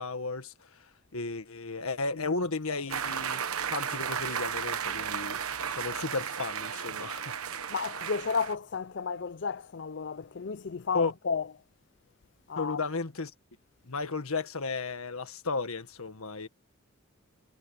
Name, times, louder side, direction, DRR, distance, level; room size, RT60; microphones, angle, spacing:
voice 1, 0.0-3.4 3.7-5.4 5.7-7.4 10.9-11.1 12.5-13.3 13.9-16.5, left 3 dB, 85° left, 1.7 m, -34 dB
voice 2, 2.1-2.8 7.7-11.5 12.5-12.8, left 5 dB, 55° left, 0.5 m, -33 dB
sound 1, 2.9-8.5, right 7 dB, 85° right, 1.1 m, -34 dB
head